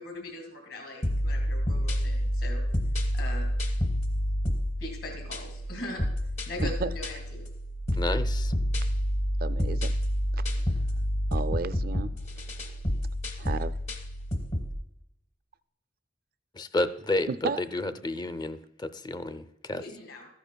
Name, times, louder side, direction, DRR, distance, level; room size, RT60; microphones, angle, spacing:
voice 1, 0.0-2.6 3.1-3.5 4.8-6.0 6.5-7.5 19.7-20.3, left 1 dB, 60° left, 2 dB, 2.3 m, -40 dB
sound 1, 1.0-14.7, equal, 40° left, 1.1 m, -29 dB
voice 2, 6.6-6.9 9.4-9.9 10.3-10.8 11.3-12.8 13.4-13.7 17.3-17.6, right 4 dB, 55° right, 14 dB, 0.4 m, -34 dB
voice 3, 8.0-8.5 16.5-17.3 17.6-19.8, left 2 dB, 25° left, 12 dB, 0.5 m, -31 dB
14.0 x 10.5 x 2.3 m, 0.85 s
head